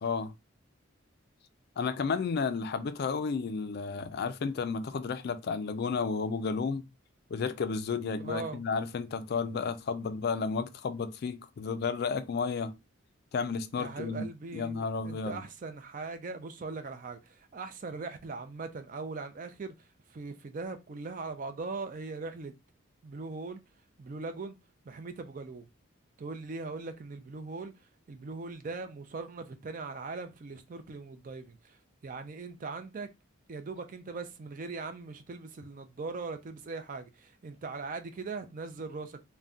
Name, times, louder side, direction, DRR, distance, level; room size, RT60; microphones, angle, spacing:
voice 1, 0.0-0.3 1.8-6.8 7.3-12.7 13.3-14.3 14.5-15.4, left 5 dB, 50° left, 0.3 m, -32 dB
voice 2, 8.2-8.6 13.8-19.7 20.1-22.5 23.0-23.6 24.0-24.6 24.9-25.7 26.2-27.7 28.1-33.1 33.5-39.2, right 3 dB, 40° right, 0.4 m, -40 dB
2.6 x 2.2 x 3.5 m
head